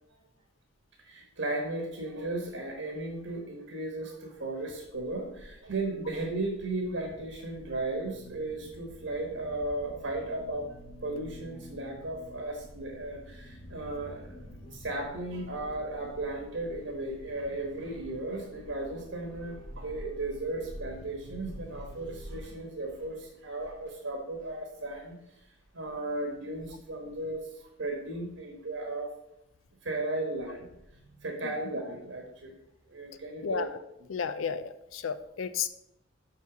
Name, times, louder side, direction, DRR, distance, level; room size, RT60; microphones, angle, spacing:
voice 1, 1.0-10.7 11.0-25.4 25.7-29.1 29.8-32.5 32.9-33.7, right 2 dB, 75° right, 1 dB, 1.2 m, -35 dB
sound 1, 4.9-22.4, equal, 70° left, 2.2 m, -50 dB
voice 2, 33.4-33.8 34.1-35.7, left 6 dB, 90° left, 12 dB, 0.5 m, -33 dB
6.0 x 4.4 x 6.0 m, 0.84 s
head